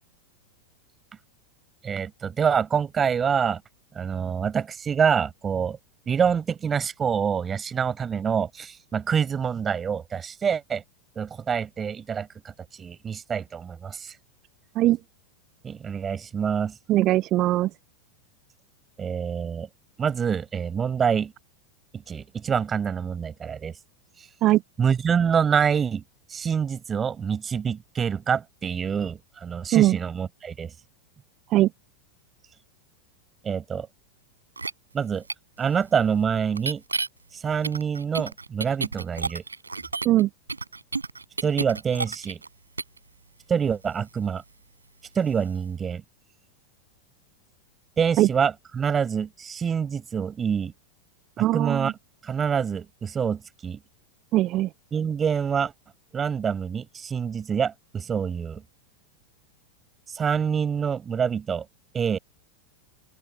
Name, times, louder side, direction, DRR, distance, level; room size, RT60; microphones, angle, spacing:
voice 1, 1.8-3.6 3.9-5.8 6.1-10.8 11.2-12.5 12.8-14.2 15.6-16.7 19.0-19.7 20.0-21.3 22.1-23.7 24.8-26.0 26.3-30.7 33.4-33.9 34.9-35.2 35.6-36.8 37.3-39.4 41.4-42.4 43.5-44.4 45.1-46.0 48.0-50.7 51.4-51.9 52.2-53.8 54.9-55.7 56.1-58.6 60.1-61.6 61.9-62.2, right 7 dB, 20° right, 6.0 m, -26 dB
voice 2, 16.9-17.7 24.4-24.6 29.7-30.0 31.5-31.7 40.0-40.3 48.2-48.3 51.4-51.9 54.3-54.7, right 15 dB, 35° right, 0.8 m, -20 dB
sound 1, 34.6-34.7 35.3-35.4 36.6-37.1 37.6-40.2 40.5-42.5 42.8-43.0, right 3 dB, 80° right, 5.2 m, -30 dB
open air
figure-of-eight pair, 90°, 0 cm